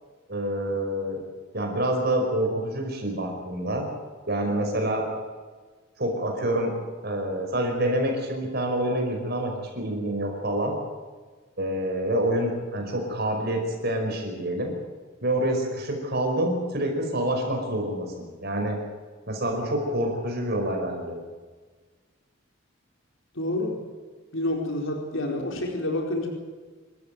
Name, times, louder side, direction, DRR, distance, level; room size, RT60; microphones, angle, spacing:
voice 1, 0.3-1.2 1.5-3.9 4.3-5.0 6.0-6.7 7.0-10.7 11.6-14.7 15.2-18.8 19.3-21.2, right 1 dB, 50° right, 2 dB, 5.3 m, -27 dB
voice 2, 23.3-23.8 24.3-26.3, left 1 dB, 70° left, 2 dB, 4.4 m, -28 dB
26.5 x 14.0 x 9.3 m, 1.4 s
head